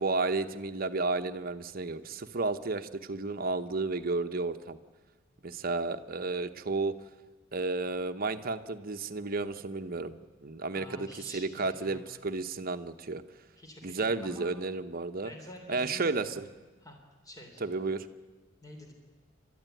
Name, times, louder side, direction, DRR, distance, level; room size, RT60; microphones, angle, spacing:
voice 1, 0.0-4.8 5.4-6.9 7.5-13.2 13.8-15.3 15.7-16.5 17.6-18.1, right 3 dB, 50° right, 9 dB, 1.0 m, -32 dB
voice 2, 10.7-12.2 13.6-14.5 15.2-16.4 16.8-17.0 17.2-17.6 18.6-18.9, left 1 dB, 20° left, 2 dB, 3.1 m, -48 dB
29.5 x 13.0 x 9.2 m, 1.3 s
head